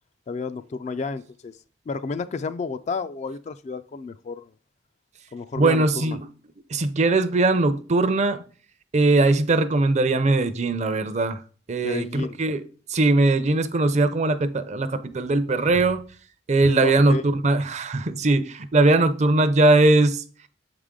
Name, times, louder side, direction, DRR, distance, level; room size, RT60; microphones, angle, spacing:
voice 1, 0.3-1.5 1.9-4.5 5.3-6.2 11.8-12.4 16.6-17.2, left 4 dB, 40° left, 0.3 m, -31 dB
voice 2, 5.6-6.2 6.7-8.4 8.9-11.4 11.7-12.6 12.9-16.0 16.5-20.2, right 2 dB, 40° right, 0.5 m, -20 dB
7.0 x 4.9 x 3.7 m
head